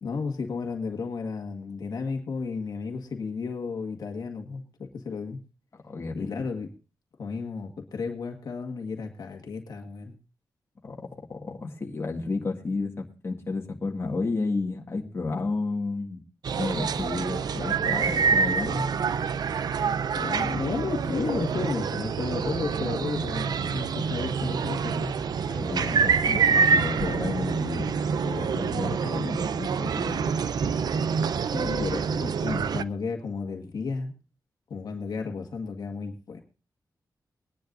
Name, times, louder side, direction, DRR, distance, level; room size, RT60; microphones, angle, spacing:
voice 1, 0.0-5.4 6.1-6.7 7.2-10.1 20.1-25.1 31.5-34.1 34.7-36.4, left 4 dB, 70° left, 3 dB, 1.7 m, -33 dB
voice 2, 5.9-6.5 10.8-11.0 11.3-16.2 16.6-18.9 25.4-27.9 28.2-30.2, left 3 dB, 35° left, 0 dB, 1.9 m, -31 dB
sound 1, 16.4-32.8, right 6 dB, 70° right, 0.5 m, -26 dB
21.5 x 10.5 x 2.6 m, 0.34 s
wide cardioid pair, 150°, 7 cm